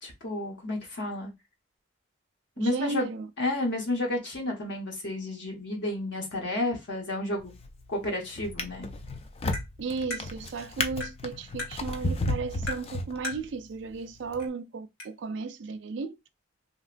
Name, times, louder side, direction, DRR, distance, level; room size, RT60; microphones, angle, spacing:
voice 1, 0.0-1.3 2.6-3.1 3.4-7.5 7.9-8.9, left 1 dB, 65° left, 1.0 m, -31 dB
voice 2, 2.6-3.3 9.8-16.1, right 4 dB, 65° right, 0.4 m, -35 dB
Drawer open or close, 7.4-7.8 8.4-13.6 14.3-14.4, left 2 dB, 30° left, 0.4 m, -33 dB
Tap, 9.5-9.7 10.1-10.2 11.0-11.2 11.6-11.7 12.7-12.9 13.2-13.4 14.4-14.5 15.0-15.1, left 3 dB, 85° left, 2.1 m, -35 dB
2.9 x 2.8 x 2.5 m
head